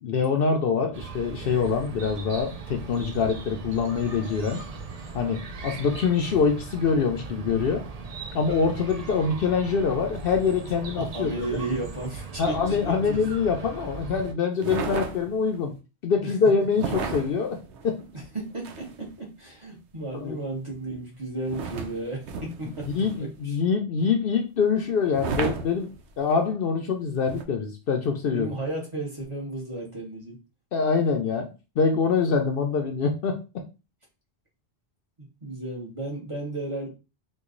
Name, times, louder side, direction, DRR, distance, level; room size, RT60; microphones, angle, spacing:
voice 1, 0.0-4.6 5.1-7.9 8.3-11.6 12.4-15.7 16.0-17.6 17.8-18.0 20.1-20.4 22.9-28.5 30.7-31.5 31.8-33.4, left 5 dB, 65° left, 4 dB, 0.7 m, -25 dB
Chirp tweet, 0.9-14.3, right 4 dB, 50° right, 0.5 m, -39 dB
voice 2, 11.0-13.2 16.2-16.3 18.1-22.9 23.2-23.6 28.3-30.4 35.4-36.9, right 2 dB, 30° right, -3 dB, 1.1 m, -34 dB
sound 1, 14.6-15.6 16.7-19.1 21.5-23.4 25.1-26.3 27.3-27.4, right 5 dB, 85° right, 0.9 m, -34 dB
3.0 x 2.3 x 3.7 m, 0.30 s
omnidirectional pair, 1.1 m